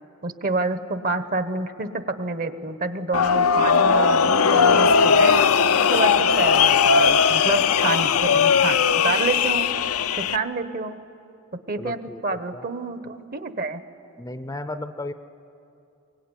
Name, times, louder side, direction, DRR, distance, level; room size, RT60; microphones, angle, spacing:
voice 1, 0.2-5.4 5.9-9.7 10.2-11.0 11.7-13.8, right 3 dB, 45° right, 11 dB, 1.1 m, -28 dB
sound 1, 3.1-10.4, left 6 dB, 80° left, 0.6 m, -18 dB
voice 2, 11.8-12.7 14.2-15.1, left 2 dB, 15° left, 11 dB, 0.6 m, -34 dB
23.0 x 23.0 x 9.9 m, 2.7 s
head